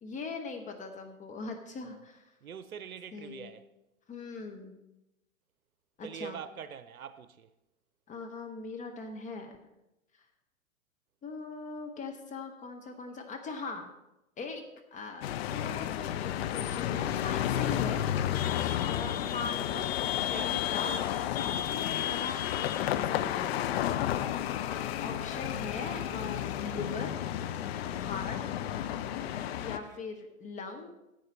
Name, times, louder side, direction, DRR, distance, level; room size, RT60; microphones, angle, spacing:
voice 1, 0.0-2.3 3.1-3.5 4.1-4.8 6.0-6.4 8.1-9.6 10.1-10.2 11.2-13.9 14.4-14.7 14.9-18.0 18.8-21.1 21.3-23.6 24.6-27.1 27.9-28.4 29.6-30.9, left 4 dB, 20° left, 0.9 m, -40 dB
voice 2, 2.4-3.7 6.0-7.5 27.8-28.1 29.0-29.5, right 7 dB, 85° right, 0.7 m, -44 dB
sound 1, 15.2-29.8, left 11 dB, 50° left, 0.6 m, -32 dB
sound 2, 24.2-30.0, right 5 dB, 35° right, 2.2 m, -54 dB
10.5 x 8.2 x 4.1 m
figure-of-eight pair, 105°, 42 cm